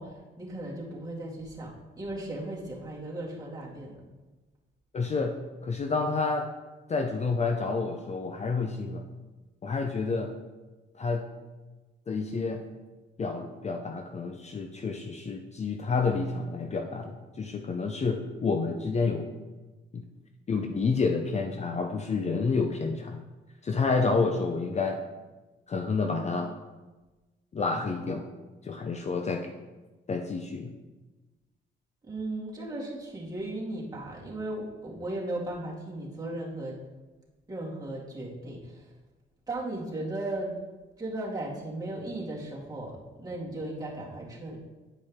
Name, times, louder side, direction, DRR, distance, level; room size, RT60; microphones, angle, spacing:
voice 1, 0.0-3.9 32.0-36.8 37.5-38.9 39.5-40.6 41.0-42.9 43.2-44.6, right 1 dB, 20° right, -5 dB, 2.3 m, -36 dB
voice 2, 4.9-5.4 5.6-6.5 6.9-9.1 9.6-10.3 10.9-11.3 12.1-12.6 13.2-19.3 19.9-20.0 20.5-23.2 23.6-25.0 25.7-26.5 27.5-28.3 28.6-29.5 30.1-30.7, left 4 dB, 35° left, 4 dB, 0.6 m, -29 dB
9.9 x 5.2 x 3.6 m, 1.2 s
cardioid pair, 90°, 20 cm